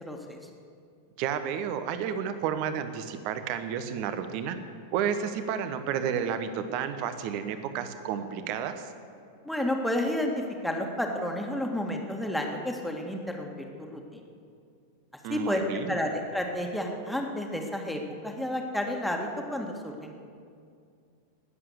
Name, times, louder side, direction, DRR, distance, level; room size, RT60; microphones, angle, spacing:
voice 1, 0.1-0.4 9.4-10.3 10.6-13.5 13.9-14.2 15.3-15.6 15.9-20.2, left 1 dB, ahead, 1 dB, 1.9 m, -31 dB
voice 2, 1.2-4.6 4.9-8.9 15.2-16.0, right 8 dB, 45° right, 10 dB, 1.1 m, -31 dB
19.5 x 7.8 x 8.2 m, 2.3 s
figure-of-eight pair, 90°, 0 cm